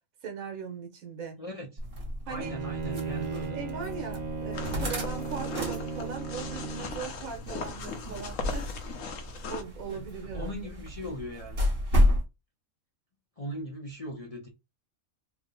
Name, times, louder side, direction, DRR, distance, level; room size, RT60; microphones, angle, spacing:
voice 1, 0.2-1.4 2.3-2.6 2.9-3.0 3.5-8.7 9.5-10.6, right 6 dB, 85° right, 1.4 m, -39 dB
voice 2, 1.4-1.7 2.3-3.6 9.9-11.7 13.4-14.5, equal, 45° left, 0.5 m, -39 dB
sound 1, 1.8-12.2, left 1 dB, 45° right, 1.2 m, -32 dB
Bowed string instrument, 2.4-7.1, right 5 dB, 60° right, 0.4 m, -36 dB
sound 2, 4.5-9.6, left 5 dB, 75° left, 1.1 m, -39 dB
3.4 x 2.1 x 3.8 m
omnidirectional pair, 1.4 m